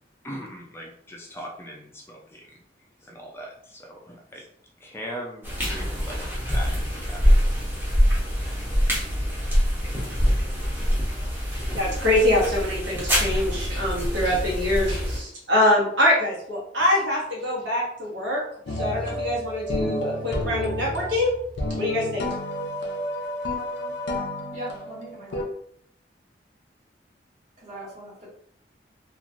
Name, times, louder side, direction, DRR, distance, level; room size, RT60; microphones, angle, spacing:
voice 1, 0.2-2.6 3.0-4.5 4.8-6.7 7.0-7.5, equal, 15° left, -1 dB, 0.4 m, -40 dB
sound 1, 5.4-15.2, equal, 10° right, 0.8 m, -24 dB
voice 2, 11.5-18.4 18.7-21.3 21.8-22.2, left 1 dB, 70° right, -5 dB, 1.2 m, -24 dB
sound 2, 18.7-25.4, left 1 dB, 90° left, 0.6 m, -30 dB
voice 3, 24.5-25.5 27.6-28.3, right 1 dB, 40° right, -6 dB, 1.3 m, -39 dB
3.0 x 2.5 x 2.5 m, 0.65 s
head